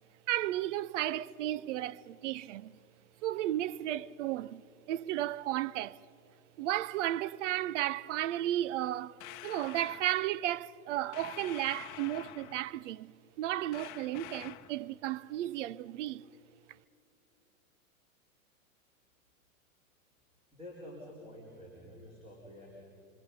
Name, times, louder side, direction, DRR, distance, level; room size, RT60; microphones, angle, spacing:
voice 1, 0.3-2.7 3.2-4.6 4.9-6.0 6.6-16.2, right 13 dB, 60° right, 0.6 m, -34 dB
sound 1, 9.2-10.1 11.1-12.7 13.7-14.8, left 16 dB, 35° left, 1.0 m, -47 dB
voice 2, 20.5-22.8, left 1 dB, 15° right, 4.1 m, -49 dB
25.5 x 24.5 x 5.6 m
hypercardioid pair, 120°, 43 cm